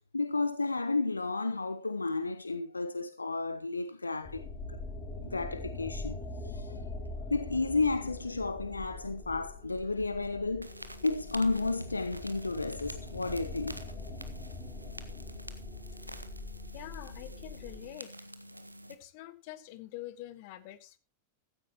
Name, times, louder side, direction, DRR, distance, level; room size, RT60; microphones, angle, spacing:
voice 1, 0.1-4.8 5.2-6.7 7.3-10.7 11.0-13.8, left 3 dB, 80° left, 0.7 m, -32 dB
sound 1, 4.2-17.9, left 2 dB, 30° left, 3.0 m, -43 dB
sound 2, 10.6-18.9, right 1 dB, 85° right, 1.0 m, -47 dB
voice 2, 16.7-18.1 18.9-21.0, left 14 dB, 50° left, 1.5 m, -45 dB
15.0 x 13.5 x 3.0 m
figure-of-eight pair, 90°, 0 cm